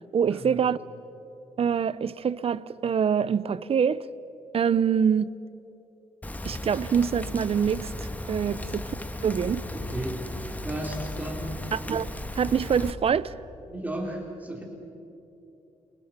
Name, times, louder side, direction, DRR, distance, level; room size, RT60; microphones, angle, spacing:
voice 1, 0.1-0.8 1.6-4.1 4.5-5.4 6.4-7.9 8.3-9.0 9.2-9.6 11.7-12.1 12.4-13.3, right 7 dB, 50° right, 0.7 m, -25 dB
Rain, 6.2-12.9, left 1 dB, 10° left, 1.3 m, -35 dB
voice 2, 9.7-10.2 10.6-11.7 13.7-14.6, right 1 dB, 10° right, 3.8 m, -34 dB
30.0 x 24.0 x 5.9 m
cardioid pair, 110°, 13 cm